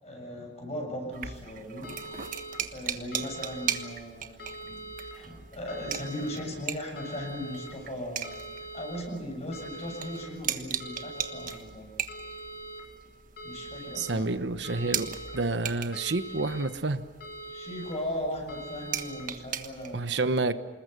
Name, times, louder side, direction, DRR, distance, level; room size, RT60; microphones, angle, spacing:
voice 1, 0.0-1.9 2.7-4.8 5.1-11.9 13.4-14.3 17.5-20.2, left 1 dB, 35° left, 2 dB, 7.1 m, -38 dB
sound 1, 1.1-20.0, right 9 dB, 50° right, 1.4 m, -39 dB
sound 2, 1.8-2.6 3.1-3.8 4.4-5.1 5.7-6.4 7.0-7.7 8.2-9.0 9.5-10.3 10.8-11.5 12.1-12.8 13.4-14.1 14.6-15.4 15.9-16.7 17.2-17.9 18.5-19.2, right 1 dB, 60° left, 4.8 m, -42 dB
voice 2, 13.9-17.0 19.9-20.5, right 3 dB, 70° right, 11 dB, 1.1 m, -29 dB
27.5 x 20.5 x 6.7 m, 1.3 s
head